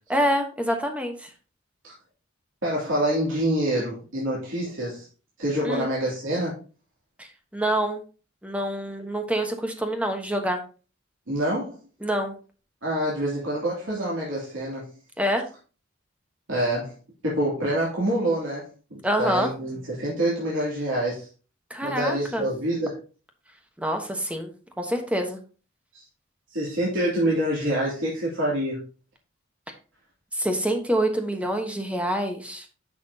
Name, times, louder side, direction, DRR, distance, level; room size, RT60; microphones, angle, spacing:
voice 1, 0.1-1.3 5.6-5.9 7.2-8.0 8.4-10.6 12.0-12.3 15.2-15.4 19.0-19.5 21.7-22.4 23.8-24.5 24.8-25.4 30.3-32.7, right 1 dB, 5° right, 4 dB, 1.2 m, -26 dB
voice 2, 2.6-5.0 5.4-6.6 11.3-11.8 12.8-14.9 16.5-16.9 17.2-21.3 21.8-23.0 25.9-26.0 26.5-28.8, right 1 dB, 85° right, -6 dB, 2.9 m, -26 dB
10.0 x 6.0 x 2.9 m, 0.35 s
head